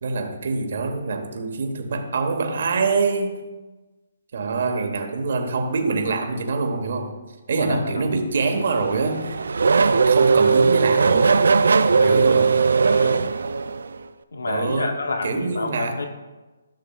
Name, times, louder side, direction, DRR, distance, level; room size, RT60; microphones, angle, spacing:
voice 1, 0.0-3.4 4.3-7.1 7.5-9.4 9.8-11.4 11.9-12.6 14.5-14.9 15.2-16.0, right 4 dB, 55° right, 4 dB, 1.3 m, -25 dB
voice 2, 7.6-8.1 12.0-12.3 12.8-13.2 14.3-16.1, left 3 dB, 90° left, 5 dB, 0.9 m, -29 dB
Race car auto racing / Accelerating revving vroom, 8.4-14.0, right 5 dB, 80° right, 0.4 m, -18 dB
13.5 x 6.5 x 2.4 m, 1.2 s
hypercardioid pair, 160°, 0 cm